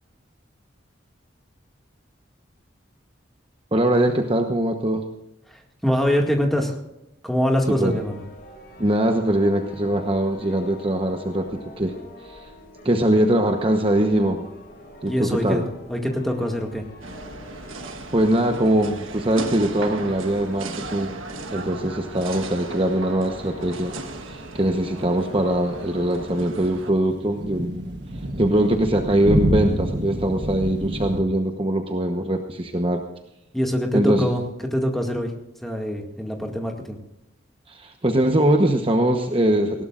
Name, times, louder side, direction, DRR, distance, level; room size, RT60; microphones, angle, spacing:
voice 1, 3.7-5.0 7.7-7.9 8.8-11.5 11.8-11.9 12.2-12.5 12.8-14.5 15.0-15.6 18.1-21.1 21.5-23.9 24.3-27.7 28.4-33.0 33.9-34.3 37.7-39.8, right 1 dB, 30° right, 4 dB, 1.0 m, -22 dB
voice 2, 5.5-6.8 7.2-8.2 15.0-15.6 15.9-16.8 33.5-34.4 34.7-35.3 35.6-37.0, equal, ahead, 1 dB, 2.0 m, -24 dB
sound 1, 7.6-26.3, left 1 dB, 50° left, 4.0 m, -44 dB
sound 2, 17.0-26.9, right 2 dB, 90° right, 1.4 m, -36 dB
sound 3, 25.8-31.2, right 1 dB, 55° right, 1.5 m, -28 dB
19.5 x 17.0 x 2.5 m, 0.87 s
head